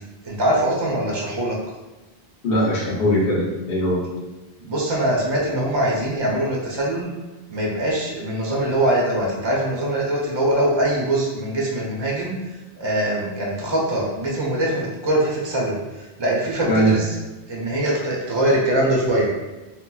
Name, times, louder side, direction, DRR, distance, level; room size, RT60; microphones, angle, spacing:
voice 1, 0.2-1.6 4.7-7.1 7.5-12.3 12.8-15.8 16.2-17.0 17.5-19.3, right 1 dB, 35° right, -3 dB, 0.4 m, -22 dB
voice 2, 2.4-4.0 16.7-17.1, equal, 60° left, -4 dB, 0.8 m, -20 dB
3.9 x 2.1 x 2.3 m, 1.1 s
omnidirectional pair, 1.1 m